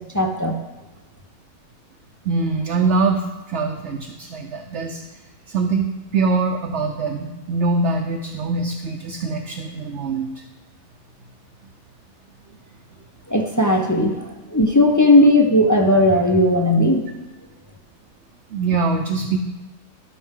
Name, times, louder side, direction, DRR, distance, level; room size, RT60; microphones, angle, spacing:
voice 1, 0.1-0.6 13.3-14.2 14.5-17.1, left 1 dB, 25° left, 2 dB, 0.3 m, -16 dB
voice 2, 2.2-5.0 5.5-10.4 18.5-19.4, right 4 dB, 60° right, 2 dB, 0.9 m, -23 dB
12.5 x 5.8 x 3.7 m, 1.1 s
omnidirectional pair, 1.5 m